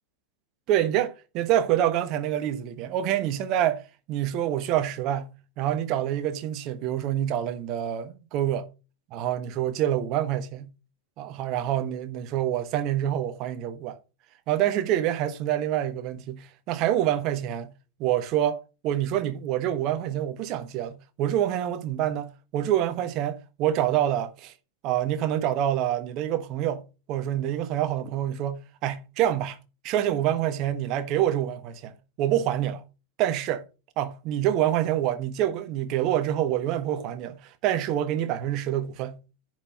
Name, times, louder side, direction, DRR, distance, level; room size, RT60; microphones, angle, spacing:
voice 1, 0.7-3.8 4.1-8.7 9.1-10.7 11.2-14.0 14.5-17.7 18.0-24.5 24.8-26.8 27.1-29.6 29.8-32.8 33.2-33.6 34.0-39.2, right 11 dB, 40° right, 1.2 m, -26 dB
10.0 x 4.9 x 5.2 m
figure-of-eight pair, 90°, 0 cm